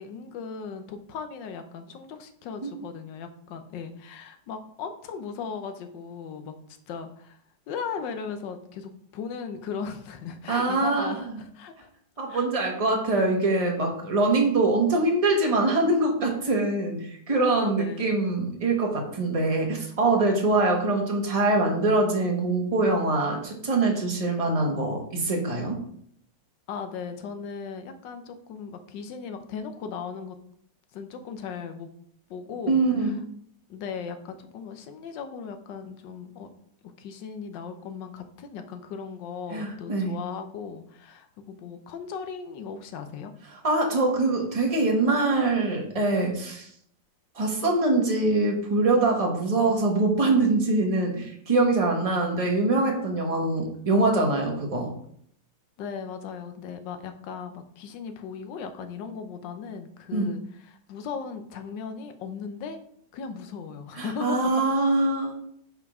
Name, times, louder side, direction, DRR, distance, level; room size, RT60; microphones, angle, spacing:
voice 1, 0.0-6.5 6.9-7.4 7.7-11.9 12.3-12.5 17.5-18.1 26.7-30.4 30.9-31.9 32.3-33.2 33.7-36.5 37.0-43.3 55.8-62.8 63.1-64.4, left 6 dB, 80° left, 8 dB, 1.4 m, -37 dB
voice 2, 10.5-11.4 12.2-25.8 32.7-33.2 39.5-40.1 43.6-46.7 47.4-54.9 60.1-60.3 64.0-65.3, right 2 dB, 25° right, 0 dB, 1.0 m, -24 dB
5.4 x 4.5 x 4.7 m, 0.66 s
omnidirectional pair, 2.0 m